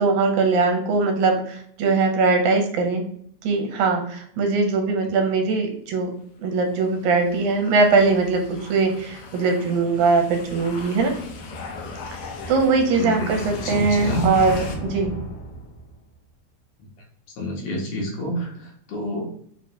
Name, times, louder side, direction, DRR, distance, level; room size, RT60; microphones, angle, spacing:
voice 1, 0.0-3.0 3.4-6.1 6.4-11.1 12.5-15.2, right 4 dB, 85° right, 4 dB, 2.0 m, -21 dB
sound 1, 6.7-16.0, left 2 dB, 85° left, 1.3 m, -36 dB
voice 2, 12.9-14.3 17.4-19.3, equal, 70° left, -1 dB, 1.8 m, -29 dB
4.8 x 2.1 x 2.7 m, 0.66 s
omnidirectional pair, 3.4 m